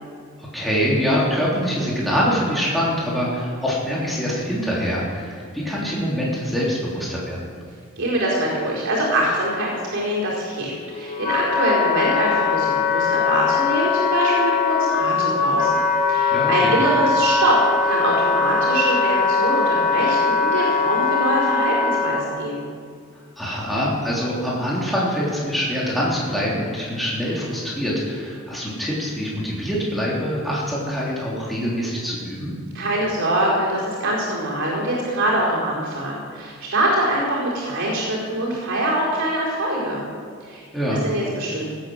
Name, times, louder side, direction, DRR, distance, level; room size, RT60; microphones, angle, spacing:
voice 1, 0.4-7.4 16.3-16.7 23.4-32.5 40.7-41.0, equal, ahead, -7 dB, 3.1 m, -24 dB
voice 2, 8.0-15.8 16.1-22.7 32.7-40.0 40.4-40.6 41.0-41.7, right 1 dB, 60° right, -5 dB, 4.6 m, -23 dB
Wind instrument woodwind instrument, 10.6-22.2, left 5 dB, 35° left, 1.6 m, -21 dB
18.5 x 8.6 x 7.6 m, 2.1 s
head